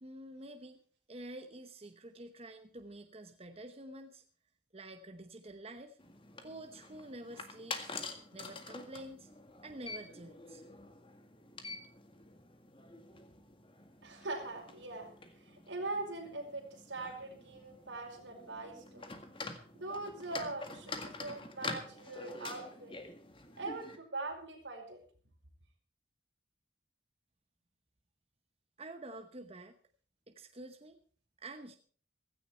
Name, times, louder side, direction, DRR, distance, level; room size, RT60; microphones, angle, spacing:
voice 1, 0.0-0.8 1.1-4.2 4.7-6.0 6.4-8.0 8.3-9.3 9.6-10.6 28.8-29.7 30.3-31.0 31.4-31.8, right 1 dB, 35° right, 6 dB, 1.0 m, -48 dB
sound 1, 6.0-24.0, left 3 dB, 30° left, 1.9 m, -47 dB
voice 2, 14.0-15.1 15.4-19.1 19.7-22.9 23.6-25.0, right 2 dB, 80° right, 2 dB, 5.0 m, -42 dB
16.0 x 15.0 x 4.5 m, 0.43 s
head